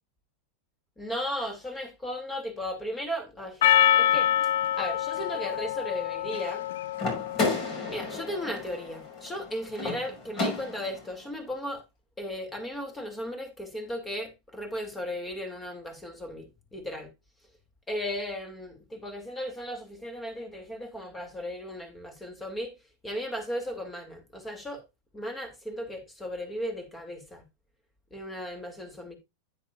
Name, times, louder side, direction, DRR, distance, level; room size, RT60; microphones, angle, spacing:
voice 1, 1.0-3.7 3.9-4.3 4.7-6.6 7.9-11.8 12.2-17.1 17.9-22.7 23.0-24.8 25.1-27.4 28.1-29.2, equal, 10° left, 2.7 m, -36 dB
Percussion, 3.6-8.2, left 11 dB, 80° left, 0.6 m, -26 dB
sound 1, 6.9-11.1, left 3 dB, 40° left, 5.9 m, -32 dB
10.0 x 9.2 x 2.5 m
supercardioid pair, 130°, 0 cm